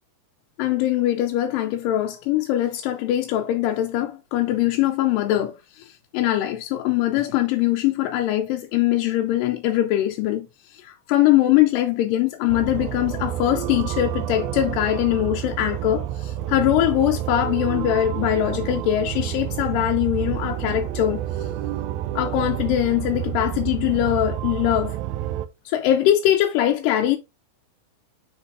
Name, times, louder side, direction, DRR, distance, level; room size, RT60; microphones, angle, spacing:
voice 1, 0.6-21.2 22.2-25.0 25.7-27.2, left 13 dB, 90° left, 2.3 m, -22 dB
sound 1, 12.5-25.5, right 12 dB, 80° right, 1.7 m, -29 dB
6.6 x 5.9 x 2.4 m
omnidirectional pair, 3.8 m